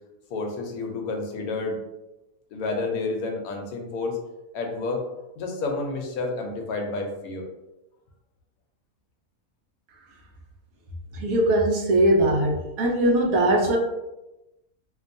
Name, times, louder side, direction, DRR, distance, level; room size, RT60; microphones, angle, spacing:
voice 1, 0.3-1.8 2.5-4.2 4.5-5.0 5.4-7.4, left 3 dB, 90° left, 2 dB, 1.1 m, -30 dB
voice 2, 11.1-13.8, right 1 dB, 80° right, 0 dB, 1.1 m, -21 dB
2.8 x 2.2 x 2.5 m, 0.96 s
omnidirectional pair, 1.5 m